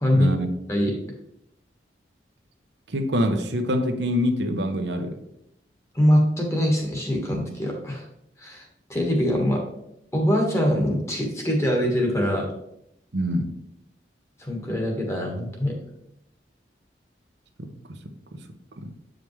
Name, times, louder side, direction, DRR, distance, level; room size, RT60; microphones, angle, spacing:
voice 1, 0.1-0.5 2.9-5.2 13.1-13.5 17.6-17.7 18.8-18.9, equal, 80° right, 6 dB, 0.8 m, -25 dB
voice 2, 5.9-8.0 8.4-8.6 8.9-9.6 10.1-12.5 14.4-15.7, equal, 15° left, 0 dB, 1.4 m, -23 dB
8.2 x 5.1 x 3.2 m, 0.79 s
head